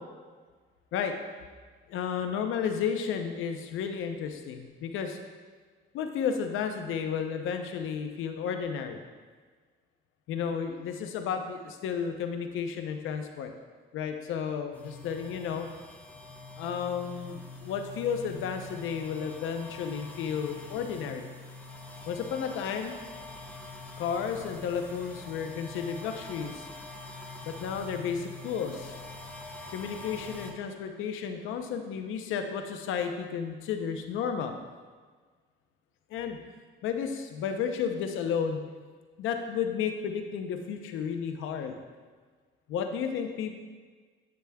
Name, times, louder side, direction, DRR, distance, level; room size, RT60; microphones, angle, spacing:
voice 1, 1.9-5.2 5.9-9.0 10.3-13.5 13.9-15.7 16.6-21.3 22.1-23.0 24.0-26.7 27.4-28.9 29.7-34.5 36.1-36.4 36.8-38.6 39.2-41.8 42.7-43.5, left 7 dB, 90° left, 5 dB, 0.7 m, -32 dB
sound 1, 14.7-30.5, left 2 dB, 10° left, 0.9 m, -45 dB
8.8 x 6.8 x 2.3 m, 1.5 s
cardioid pair, 90°, 20 cm